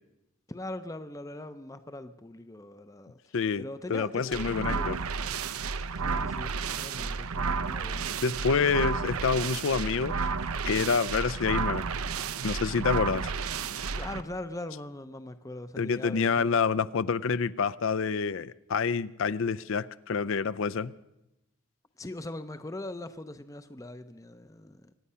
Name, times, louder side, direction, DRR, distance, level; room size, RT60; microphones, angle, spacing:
voice 1, 0.5-5.0 5.6-8.9 14.0-16.8 22.0-24.9, left 1 dB, 15° left, 0.5 m, -41 dB
voice 2, 3.3-3.6 3.9-5.0 8.2-10.2 10.6-11.8 12.4-13.3 15.8-20.9, left 5 dB, 65° left, 0.5 m, -27 dB
sound 1, 4.3-14.2, right 5 dB, 90° right, 0.7 m, -32 dB
24.0 x 9.8 x 5.6 m
head